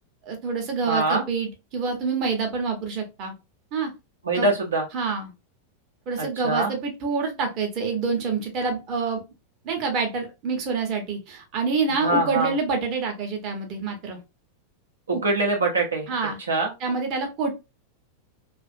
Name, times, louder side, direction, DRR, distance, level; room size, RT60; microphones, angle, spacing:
voice 1, 0.2-3.3 3.7-3.9 4.3-4.5 4.9-5.3 6.1-9.2 9.6-14.2 15.1-15.2 16.1-16.4 16.8-17.5, right 4 dB, 40° right, 3 dB, 0.8 m, -27 dB
voice 2, 0.9-1.2 4.3-4.8 6.2-6.7 12.0-12.5 15.1-16.1 16.5-16.7, right 2 dB, 70° right, 0 dB, 0.7 m, -23 dB
2.4 x 2.4 x 2.4 m, 0.26 s
figure-of-eight pair, 90°, 0 cm